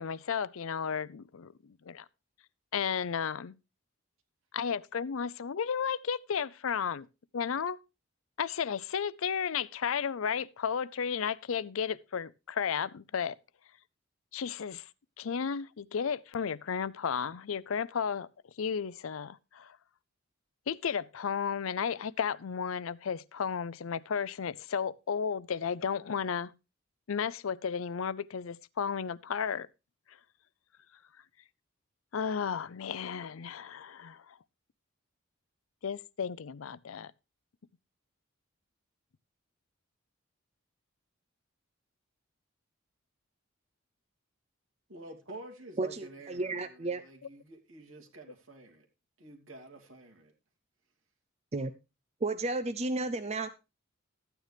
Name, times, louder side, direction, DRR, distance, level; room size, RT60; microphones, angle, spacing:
voice 1, 0.0-2.0 2.7-3.6 4.5-7.1 7.3-7.8 8.4-13.4 14.3-14.9 15.2-18.3 18.6-19.8 20.7-26.5 27.1-29.7 32.1-34.4 35.8-37.1, left 7 dB, 75° left, 0.5 m, -33 dB
voice 2, 44.9-48.9 49.2-50.3, right 2 dB, 70° right, 2.7 m, -49 dB
voice 3, 45.8-47.0 51.5-51.7 52.2-53.5, right 2 dB, 30° right, 0.6 m, -32 dB
13.5 x 9.2 x 3.4 m
head